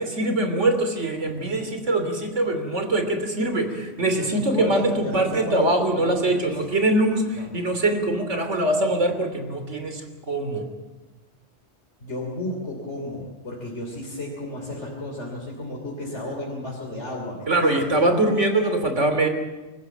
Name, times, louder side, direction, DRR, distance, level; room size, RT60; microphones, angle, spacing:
voice 1, 0.0-10.0 10.3-10.6 17.5-19.3, right 2 dB, 85° right, 6 dB, 3.3 m, -23 dB
voice 2, 4.0-5.7 5.9-6.7 7.4-7.5 12.0-17.9, left 1 dB, 70° left, -1 dB, 3.5 m, -33 dB
25.5 x 14.5 x 9.1 m, 1.2 s
omnidirectional pair, 1.2 m